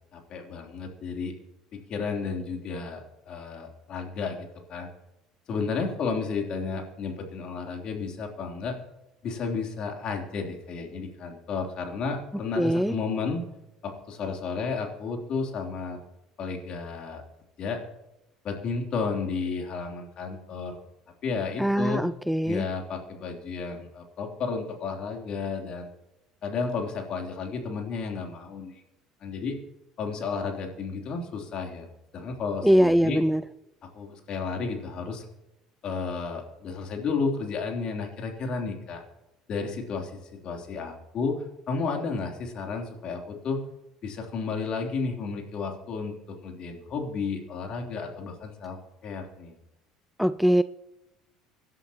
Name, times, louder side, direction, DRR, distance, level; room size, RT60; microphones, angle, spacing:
voice 1, 0.1-1.3 1.7-4.9 5.5-8.8 9.2-13.4 13.8-16.0 16.4-17.2 17.6-17.8 18.4-20.8 21.2-22.0 22.4-25.9 26.4-28.8 29.2-29.6 30.0-31.9 32.1-33.2 33.8-35.2 35.8-39.0 39.5-41.4 41.7-43.6 44.0-48.8 49.0-49.5, left 4 dB, 50° left, 2 dB, 3.3 m, -32 dB
voice 2, 12.6-13.0 21.6-22.6 32.6-33.4 50.2-50.6, equal, ahead, 15 dB, 0.4 m, -22 dB
25.0 x 11.5 x 3.0 m, 0.94 s
hypercardioid pair, 65°, 2 cm